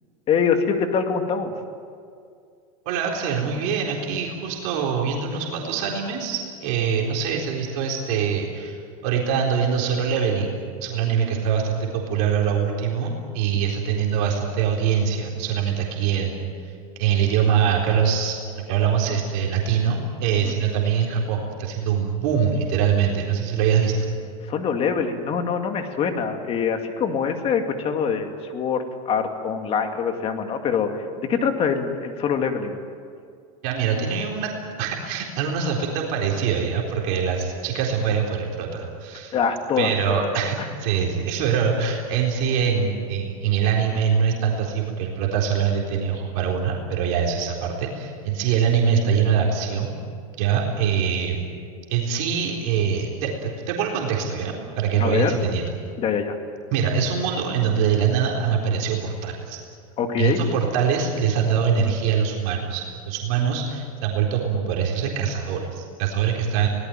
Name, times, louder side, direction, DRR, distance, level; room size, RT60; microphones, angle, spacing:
voice 1, 0.3-1.5 24.5-32.8 39.3-40.3 55.0-55.4 56.0-56.4 60.0-60.5, left 6 dB, 30° left, 5 dB, 2.5 m, -24 dB
voice 2, 2.9-10.5 10.8-16.4 17.0-24.1 33.6-34.5 34.8-39.3 39.8-50.0 50.4-51.4 51.9-55.6 56.7-59.6 60.2-66.7, right 7 dB, 55° right, -1 dB, 4.0 m, -23 dB
24.0 x 19.0 x 9.2 m, 2.3 s
supercardioid pair, 140°, 18 cm